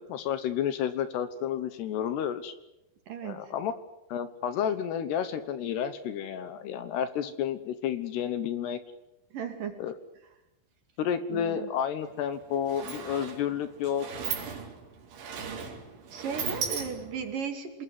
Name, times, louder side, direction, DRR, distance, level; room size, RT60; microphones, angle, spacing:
voice 1, 0.0-2.5 3.2-3.7 4.1-8.8 9.8-10.0 11.0-14.1, left 9 dB, 70° left, 12 dB, 3.0 m, -31 dB
voice 2, 3.1-3.5 9.3-9.8 11.3-11.7 16.1-17.8, right 6 dB, 50° right, 5 dB, 3.8 m, -36 dB
Sliding door, 12.0-12.1 12.4-17.3, right 6 dB, 80° right, 6.0 m, -37 dB
27.0 x 21.5 x 9.5 m, 0.90 s
omnidirectional pair, 5.3 m